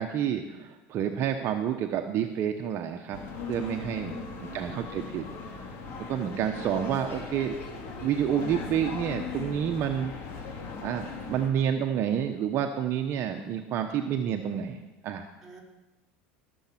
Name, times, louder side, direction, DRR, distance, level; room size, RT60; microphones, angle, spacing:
voice 1, 0.0-4.2 4.5-5.3 6.1-7.5 8.0-10.1 10.8-15.2, right 9 dB, 45° right, 5 dB, 0.9 m, -29 dB
sound 1, 3.1-11.5, left 4 dB, 50° left, 2.5 m, -39 dB
voice 2, 4.1-4.8 15.4-15.6, right 2 dB, 5° right, -4 dB, 4.2 m, -46 dB
18.0 x 7.1 x 5.9 m, 1.1 s
supercardioid pair, 110°, 6 cm